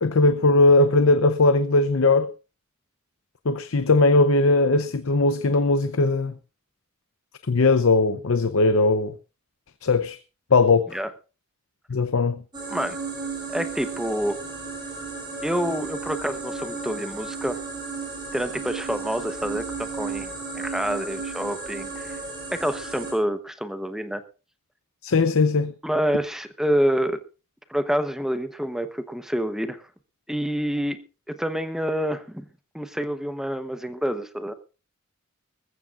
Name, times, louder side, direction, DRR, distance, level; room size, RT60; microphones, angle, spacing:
voice 1, 0.0-2.3 3.4-6.3 7.5-9.1 9.8-10.2 10.5-11.0 11.9-12.4 25.0-25.7, left 3 dB, 70° left, 0.7 m, -19 dB
sound 1, 12.5-23.1, right 4 dB, 20° right, 5.7 m, -34 dB
voice 2, 13.5-14.4 15.4-17.6 18.3-22.2 22.5-24.2 25.8-27.2 27.7-29.9 30.3-31.0 31.4-32.4 32.7-34.5, equal, ahead, 1.0 m, -27 dB
20.5 x 15.0 x 2.5 m
head